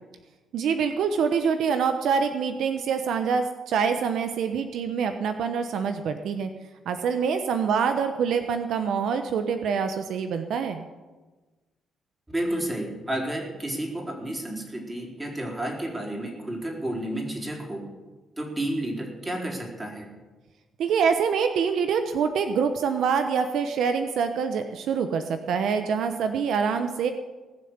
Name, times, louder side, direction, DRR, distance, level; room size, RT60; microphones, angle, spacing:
voice 1, 0.5-6.5 6.9-10.9 20.8-27.1, right 6 dB, 75° right, 7 dB, 1.0 m, -25 dB
voice 2, 12.3-17.9 18.4-20.1, right 1 dB, 15° right, 0 dB, 4.2 m, -31 dB
19.0 x 6.9 x 8.1 m, 1.2 s
cardioid pair, 90°, 0 cm